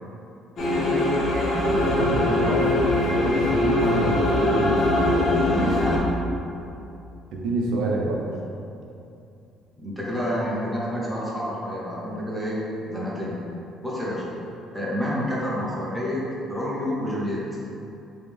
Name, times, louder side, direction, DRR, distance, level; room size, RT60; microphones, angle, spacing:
sound 1, 0.6-6.0, left 2 dB, 40° left, 0.7 m, -22 dB
voice 1, 1.6-4.9 7.3-8.2, right 2 dB, 75° right, -2 dB, 0.6 m, -27 dB
voice 2, 5.5-6.1 9.8-13.4 13.8-14.2 14.7-16.2 16.5-17.4, equal, ahead, -7 dB, 0.6 m, -28 dB
3.5 x 3.0 x 3.3 m, 2.7 s
cardioid pair, 170°, 0 cm